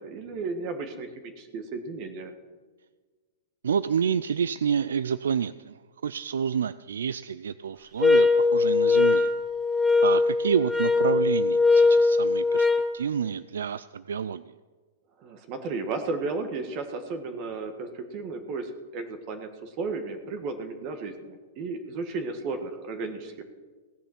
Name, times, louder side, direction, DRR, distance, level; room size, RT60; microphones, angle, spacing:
voice 1, 0.0-2.3 15.2-23.4, right 3 dB, 45° right, 7 dB, 1.6 m, -34 dB
voice 2, 3.6-9.3 10.0-12.7 12.9-14.5, right 7 dB, 90° right, 15 dB, 0.3 m, -29 dB
sound 1, 8.0-12.9, left 3 dB, 5° left, 0.9 m, -21 dB
17.0 x 6.9 x 7.2 m, 1.4 s
hypercardioid pair, 130°, 0 cm